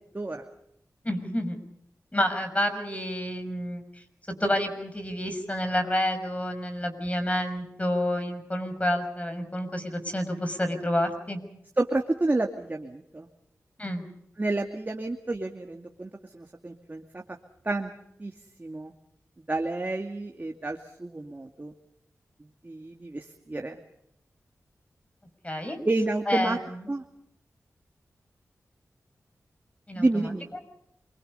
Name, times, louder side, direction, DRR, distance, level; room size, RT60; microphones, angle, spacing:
voice 1, 1.0-1.6 2.1-4.0 4.4-11.4 13.8-14.0 25.4-25.8 26.3-26.9 29.9-30.3, left 1 dB, 25° left, 8 dB, 6.2 m, -29 dB
voice 2, 11.8-13.3 14.4-17.2 17.6-17.9 18.2-18.3 18.6-18.9 19.5-21.7 22.6-23.8 25.9-26.6 26.9-27.0 30.0-30.5, right 2 dB, 30° right, 3 dB, 2.3 m, -29 dB
28.0 x 24.5 x 5.6 m, 0.75 s
cardioid pair, 50°, 6 cm